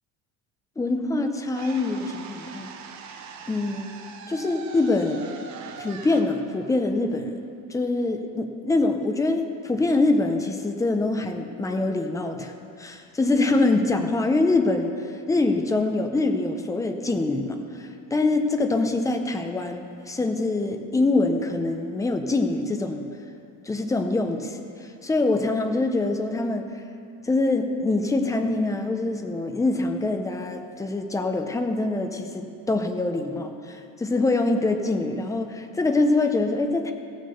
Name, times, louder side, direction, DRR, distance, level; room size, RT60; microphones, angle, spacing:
voice 1, 0.8-2.7 3.5-3.9 4.3-5.3 5.8-7.4 7.7-12.5 12.8-14.9 15.3-23.1 23.6-26.7 27.2-36.9, left 2 dB, 5° left, 5 dB, 0.5 m, -24 dB
sound 1, 1.5-7.6, right 6 dB, 35° right, 0.9 m, -42 dB
16.0 x 6.5 x 6.9 m, 2.5 s
cardioid pair, 155°, 47 cm